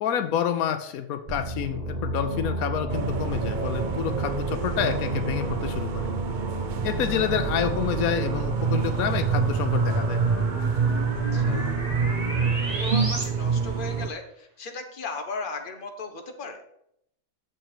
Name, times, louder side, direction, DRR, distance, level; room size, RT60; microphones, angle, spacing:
voice 1, 0.0-6.1 6.8-10.2, left 9 dB, 85° left, 9 dB, 1.1 m, -28 dB
sound 1, 1.3-13.2, right 2 dB, 30° right, 1.6 m, -30 dB
sound 2, 2.9-14.1, right 6 dB, 70° right, 0.4 m, -28 dB
voice 2, 11.3-11.9 12.7-16.6, left 3 dB, 40° left, 5 dB, 1.2 m, -36 dB
7.3 x 5.1 x 6.7 m, 0.74 s
omnidirectional pair, 1.5 m